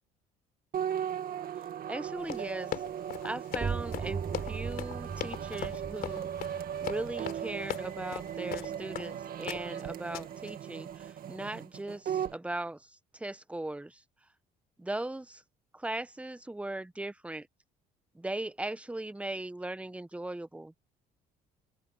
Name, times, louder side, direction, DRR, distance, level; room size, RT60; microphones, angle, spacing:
sound 1, 0.7-12.4, right 9 dB, 60° right, 2.1 m, -38 dB
voice 1, 1.9-2.7 3.2-6.3 6.8-14.0 14.8-15.4 15.7-17.5 18.1-20.7, right 2 dB, 5° right, 1.1 m, -38 dB
Run, 2.2-9.1 9.5-9.8 10.1-10.5, left 11 dB, 65° left, 3.9 m, -39 dB
sound 2, 3.5-9.1, right 6 dB, 35° right, 7.5 m, -40 dB
open air
cardioid pair, 110°, 17 cm